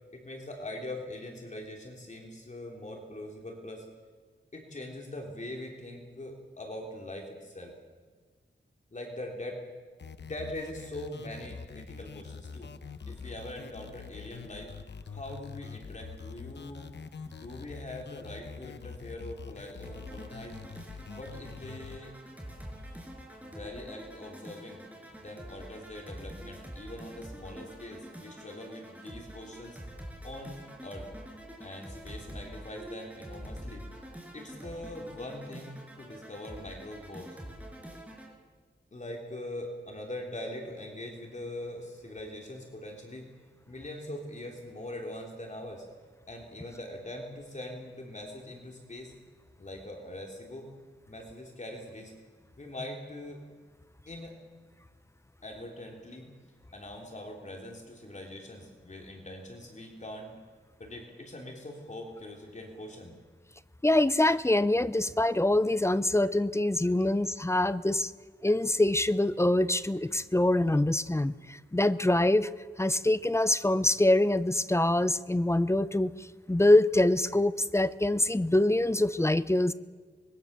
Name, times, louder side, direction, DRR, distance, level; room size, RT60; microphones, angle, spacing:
voice 1, 0.1-3.9 4.5-7.7 8.9-9.6 10.2-12.7 13.1-14.7 15.1-16.9 17.3-20.6 21.1-22.1 23.4-24.8 25.2-29.8 30.2-31.1 31.6-33.9 34.3-37.6 38.9-43.2 43.7-45.8 46.3-49.1 49.6-50.7 51.1-52.1 52.6-53.4 54.1-54.4 55.4-56.3 56.7-60.3 60.8-63.2, left 1 dB, 40° left, 1 dB, 3.6 m, -42 dB
sound 1, 10.0-22.0, left 5 dB, 65° left, 1.0 m, -45 dB
sound 2, 19.8-38.3, equal, 10° right, 5.3 m, -46 dB
voice 2, 63.8-68.1 68.4-72.5 72.8-76.1 76.5-79.7, left 1 dB, 15° left, 14 dB, 0.7 m, -25 dB
25.0 x 21.5 x 6.9 m, 1.5 s
wide cardioid pair, 105°, 19 cm